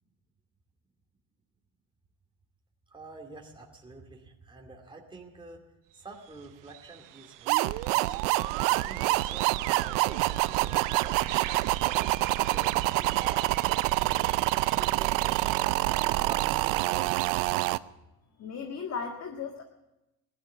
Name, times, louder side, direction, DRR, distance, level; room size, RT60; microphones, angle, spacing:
voice 1, 2.9-5.6 5.9-8.2 8.6-11.3 11.8-15.8 16.1-17.7, right 3 dB, 15° right, 1 dB, 2.4 m, -47 dB
sound 1, 5.9-6.0 6.2-15.6, right 14 dB, 60° right, 0.8 m, -43 dB
sound 2, 7.5-17.8, right 20 dB, 90° right, 0.5 m, -27 dB
voice 2, 18.4-19.6, left 6 dB, 45° left, 3 dB, 1.7 m, -36 dB
15.5 x 12.0 x 7.3 m, 0.94 s
supercardioid pair, 90°, 35 cm